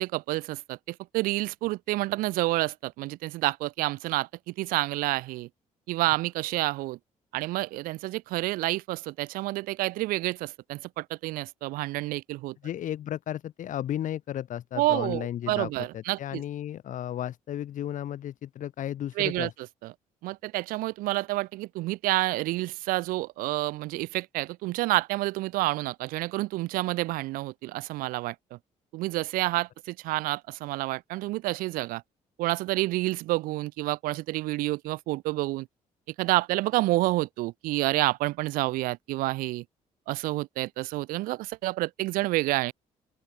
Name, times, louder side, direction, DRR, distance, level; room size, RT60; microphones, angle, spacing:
voice 1, 0.0-5.5 5.9-7.0 7.3-12.6 14.8-16.4 19.2-19.5 19.8-19.9 20.2-28.6 28.9-32.0 32.4-35.7 36.1-39.6 40.1-42.7, right 19 dB, 85° right, 0.5 m, -29 dB
voice 2, 12.6-19.5, left 11 dB, 65° left, 1.5 m, -34 dB
open air
supercardioid pair, 70°, 14 cm